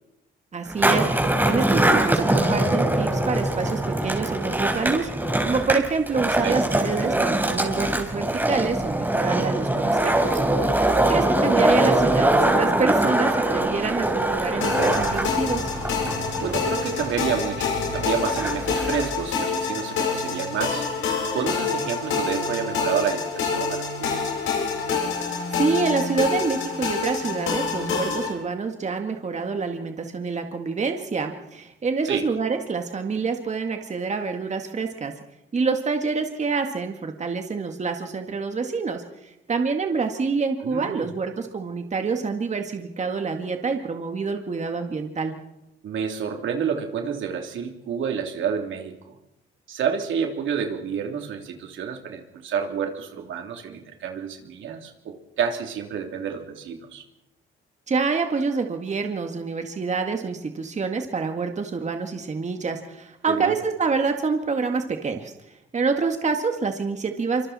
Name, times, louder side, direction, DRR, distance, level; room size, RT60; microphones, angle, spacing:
voice 1, 0.5-5.1 5.4-15.7 25.5-35.1 35.5-45.3 57.9-65.3 65.7-67.5, right 4 dB, 35° right, 5 dB, 2.0 m, -27 dB
Skateboard, 0.7-19.3, right 1 dB, 10° right, 4.6 m, -23 dB
sound 1, 14.6-28.3, left 5 dB, 80° left, 7.8 m, -27 dB
voice 2, 16.4-20.9 21.3-24.4 32.1-32.2 40.6-41.1 45.8-49.1 49.7-57.0 63.3-63.5, right 7 dB, 75° right, 3 dB, 3.2 m, -29 dB
25.5 x 25.0 x 4.3 m, 0.89 s
cardioid pair, 90°, 20 cm